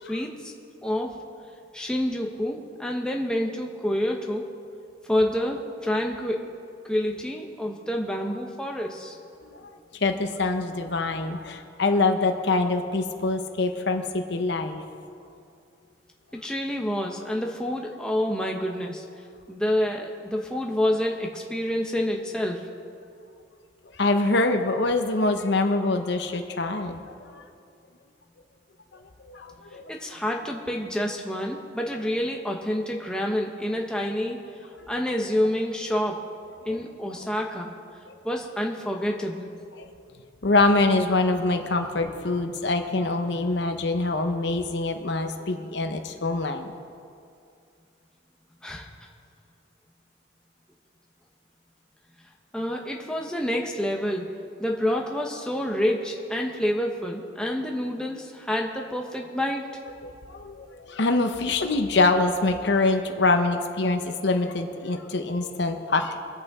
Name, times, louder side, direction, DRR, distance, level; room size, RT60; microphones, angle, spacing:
voice 1, 0.1-0.5 0.8-1.1 1.7-4.5 5.0-6.5 6.8-9.2 16.3-19.0 19.5-22.7 29.9-34.4 34.9-36.2 36.7-37.7 38.2-39.5 48.6-48.9 52.5-54.3 54.6-59.6, left 1 dB, 5° left, 0 dB, 0.9 m, -28 dB
voice 2, 9.5-14.8 23.9-27.4 28.9-29.9 37.2-37.3 39.8-39.9 40.4-46.7 60.0-66.2, left 3 dB, 60° left, 6 dB, 0.8 m, -25 dB
24.0 x 8.4 x 3.6 m, 2.4 s
head